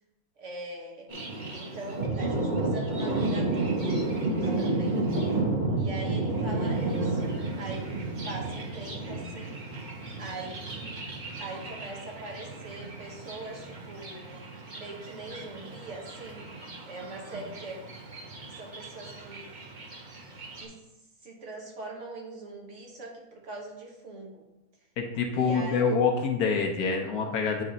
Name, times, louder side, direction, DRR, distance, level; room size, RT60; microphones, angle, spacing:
voice 1, 0.4-1.1 1.5-5.0 5.7-7.9 8.2-9.6 10.2-11.1 11.4-16.4 16.9-17.9 18.6-19.5 20.5-20.8 21.2-24.5 25.3-26.0, right 2 dB, 55° right, 0 dB, 1.4 m, -42 dB
Thunder, 1.1-20.6, right 2 dB, 35° right, 1.0 m, -32 dB
voice 2, 25.0-27.6, left 5 dB, 75° left, 2 dB, 1.2 m, -26 dB
9.1 x 3.2 x 3.9 m, 0.98 s
omnidirectional pair, 1.6 m